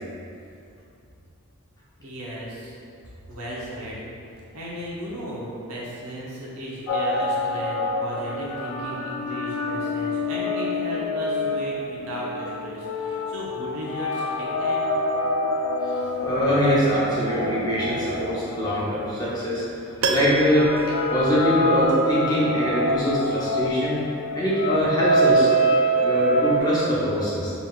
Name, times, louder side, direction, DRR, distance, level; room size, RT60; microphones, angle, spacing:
voice 1, 2.0-2.7 3.3-4.0 4.5-14.9, right 1 dB, 85° right, -6 dB, 1.0 m, -35 dB
sound 1, 6.9-19.4 20.1-26.6, equal, 90° left, 0.4 m, -26 dB
voice 2, 15.8-19.6 20.1-20.7 21.1-24.0 24.3-25.5 26.0-27.5, equal, 15° left, -8 dB, 0.8 m, -23 dB
Piano, 20.0-22.1 22.4-22.5, right 3 dB, 65° right, 0.3 m, -30 dB
5.5 x 3.0 x 2.4 m, 2.6 s
head